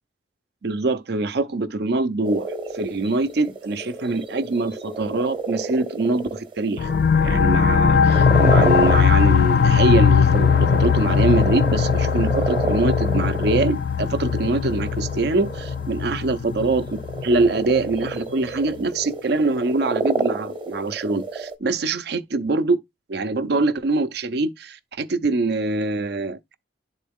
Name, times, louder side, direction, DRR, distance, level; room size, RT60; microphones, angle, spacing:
voice 1, 0.6-2.5 2.7-6.9 7.2-16.9 17.2-22.8 23.1-26.6, right 3 dB, 65° right, 0.6 m, -24 dB
sound 1, 2.2-7.4 8.0-9.6 9.9-13.7 14.1-16.2 16.5-21.5, right 3 dB, 30° right, 0.9 m, -29 dB
sound 2, 6.8-18.1, left 6 dB, 60° left, 0.4 m, -19 dB
10.0 x 4.0 x 3.5 m
head